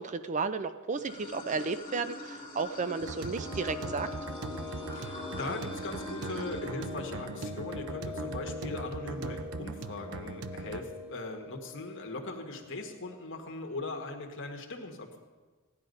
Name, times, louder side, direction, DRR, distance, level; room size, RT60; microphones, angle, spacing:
voice 1, 0.0-4.1, right 4 dB, 35° right, 11 dB, 0.4 m, -33 dB
Water / Sink (filling or washing), 0.9-6.6, left 1 dB, 25° left, 2.8 m, -43 dB
sound 1, 2.5-13.4, left 3 dB, 50° right, 2.6 m, -44 dB
sound 2, 3.0-10.8, right 3 dB, 70° right, 0.6 m, -40 dB
voice 2, 4.9-15.2, left 2 dB, 55° left, 3 dB, 1.7 m, -40 dB
15.5 x 10.5 x 5.4 m, 1.3 s
head